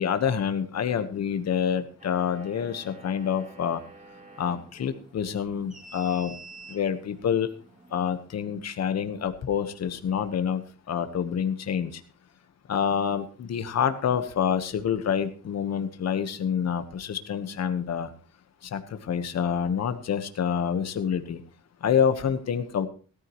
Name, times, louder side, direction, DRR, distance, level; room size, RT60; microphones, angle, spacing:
voice 1, 0.0-3.8 4.4-6.4 6.7-7.5 7.9-12.0 12.7-18.1 18.6-21.4 21.8-22.9, left 8 dB, 60° left, 10 dB, 1.3 m, -27 dB
sound 1, 2.0-8.3, right 2 dB, 25° right, 2.7 m, -49 dB
17.5 x 13.5 x 3.1 m, 0.38 s
wide cardioid pair, 150°, 30 cm